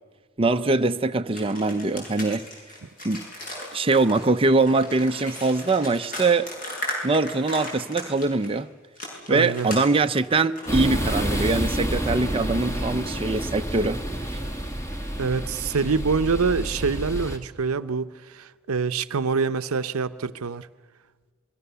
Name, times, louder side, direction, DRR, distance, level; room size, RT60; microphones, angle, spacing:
voice 1, 0.4-2.5 3.0-3.2 3.7-6.5 7.0-8.7 9.3-14.0, right 3 dB, 25° right, 0.7 m, -22 dB
sound 1, 1.3-8.5 9.0-10.7, left 1 dB, 40° left, 7.7 m, -36 dB
voice 2, 9.3-9.7 15.2-20.7, right 5 dB, 90° right, 0.7 m, -25 dB
sound 2, 10.7-17.4, right 1 dB, 15° left, 2.2 m, -29 dB
28.0 x 22.0 x 6.9 m
head